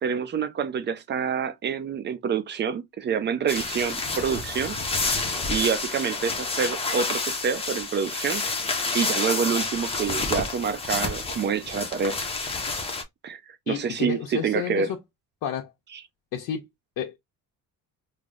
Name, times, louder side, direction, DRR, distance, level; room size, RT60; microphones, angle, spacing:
voice 1, 0.0-4.8 5.5-8.4 8.9-12.2 13.2-14.9, right 6 dB, 30° right, 0.4 m, -27 dB
sound 1, 3.5-13.0, left 3 dB, 15° left, 0.6 m, -29 dB
voice 2, 13.7-15.0 15.4-15.7 16.3-16.6 17.0-17.2, left 9 dB, 70° left, 0.7 m, -31 dB
3.2 x 2.0 x 3.7 m
cardioid pair, 160°, 37 cm